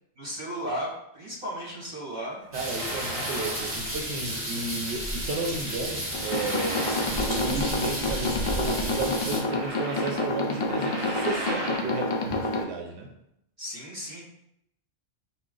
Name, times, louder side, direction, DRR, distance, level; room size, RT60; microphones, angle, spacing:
voice 1, 0.1-2.4 13.6-14.2, equal, 40° right, -5 dB, 1.6 m, -35 dB
sound 1, 2.4-4.1 4.4-4.6 5.9-7.8 8.1-8.2 9.0-12.1, right 1 dB, 65° right, 1.1 m, -36 dB
sound 2, 2.5-9.4, equal, 10° right, 1.3 m, -32 dB
voice 2, 2.5-6.9 7.2-13.1, right 3 dB, 90° right, 2 dB, 0.9 m, -33 dB
sound 3, 6.1-12.6, left 2 dB, 55° left, 0.3 m, -29 dB
4.5 x 2.2 x 3.7 m, 0.76 s
omnidirectional pair, 1.1 m